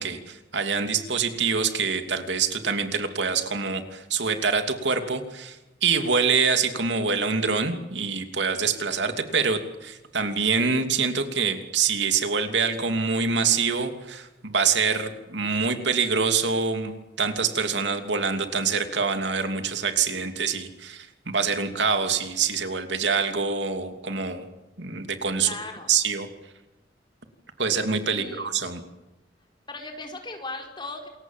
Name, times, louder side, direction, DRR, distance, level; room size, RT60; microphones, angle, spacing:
voice 1, 0.0-24.5 24.8-25.5 25.9-26.3 27.6-28.8, right 5 dB, 80° right, 6 dB, 2.9 m, -25 dB
voice 2, 25.4-25.9 28.1-28.6 29.7-31.1, left 2 dB, 25° left, 3 dB, 5.1 m, -37 dB
28.0 x 23.0 x 7.5 m, 1.0 s
head